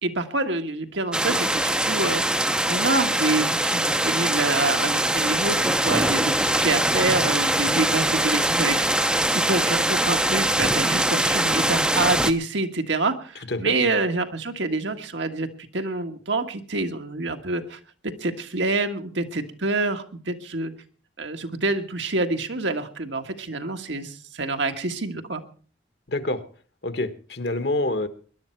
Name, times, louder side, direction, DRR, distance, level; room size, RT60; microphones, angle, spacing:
voice 1, 0.0-2.2 2.7-8.8 9.3-15.5 15.7-20.7 21.2-25.4, right 2 dB, 70° right, 6 dB, 1.6 m, -27 dB
sound 1, 1.1-12.3, right 1 dB, 5° right, 0.6 m, -22 dB
voice 2, 26.1-26.4 26.8-28.1, left 2 dB, 60° left, 11 dB, 1.3 m, -26 dB
20.0 x 11.5 x 4.5 m, 0.42 s
head